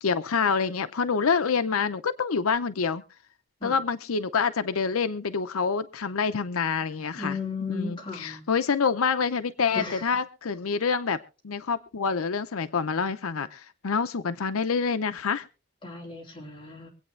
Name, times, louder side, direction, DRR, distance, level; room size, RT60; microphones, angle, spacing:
voice 1, 0.0-3.0 3.6-7.4 7.7-11.2 11.4-15.4, left 5 dB, 90° left, 11 dB, 0.7 m, -27 dB
voice 2, 7.2-8.4 9.7-10.0 15.8-16.9, left 4 dB, 25° left, -3 dB, 3.8 m, -35 dB
24.5 x 8.6 x 3.3 m, 0.34 s
head